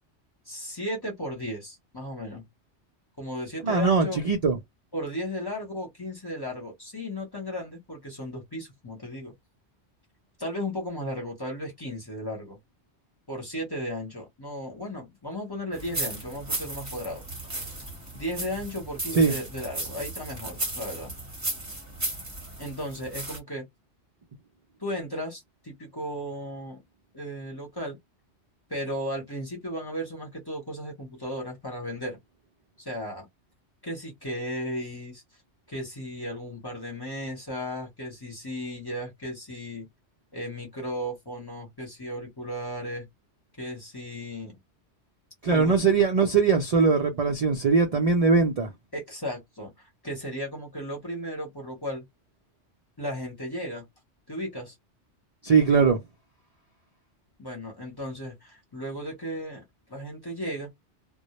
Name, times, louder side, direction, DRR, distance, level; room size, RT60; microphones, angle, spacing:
voice 1, 0.5-2.4 3.2-4.2 4.9-9.3 10.4-12.6 13.3-17.2 18.1-21.1 22.6-23.7 24.8-26.8 27.1-28.0 28.7-32.2 32.8-33.3 33.8-35.2 35.7-39.9 40.3-43.1 43.6-44.6 45.5-45.8 48.9-52.0 53.0-53.9 54.3-54.7 57.4-59.6 59.9-60.7, equal, 25° left, 0.7 m, -35 dB
voice 2, 3.6-4.6 19.1-19.3 45.4-48.7 55.4-56.0, right 4 dB, 70° right, 0.3 m, -21 dB
sound 1, 15.7-23.4, right 2 dB, 15° right, 0.7 m, -35 dB
2.1 x 2.0 x 2.8 m
omnidirectional pair, 1.3 m